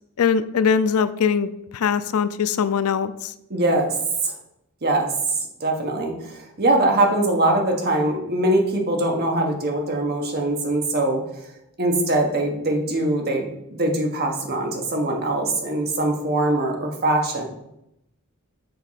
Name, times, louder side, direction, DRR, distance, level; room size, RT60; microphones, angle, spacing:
voice 1, 0.2-3.3, left 6 dB, 75° left, 13 dB, 0.4 m, -22 dB
voice 2, 3.5-3.9 4.2-4.3 4.8-5.1 5.6-11.2 11.8-17.4, right 1 dB, 45° right, 2 dB, 1.4 m, -22 dB
7.0 x 3.7 x 5.7 m, 0.82 s
head